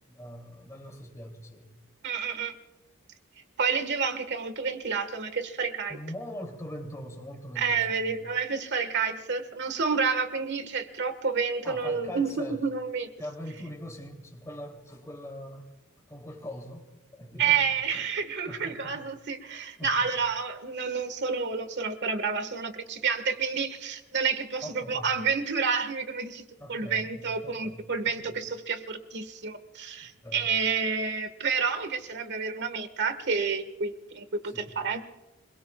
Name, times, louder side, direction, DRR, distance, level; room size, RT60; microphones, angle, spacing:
voice 1, 0.1-1.7 5.9-8.2 11.6-12.6 13.2-15.7 16.1-17.7 17.9-18.1 18.5-19.0 19.8-20.1 24.6-25.1 26.6-28.3 30.2-30.5 34.5-34.8, equal, 15° left, 1 dB, 2.8 m, -42 dB
voice 2, 2.0-2.6 3.6-6.0 7.5-13.1 17.4-26.4 26.7-35.0, right 5 dB, 55° right, 9 dB, 1.5 m, -29 dB
26.5 x 22.5 x 2.3 m, 1.0 s
head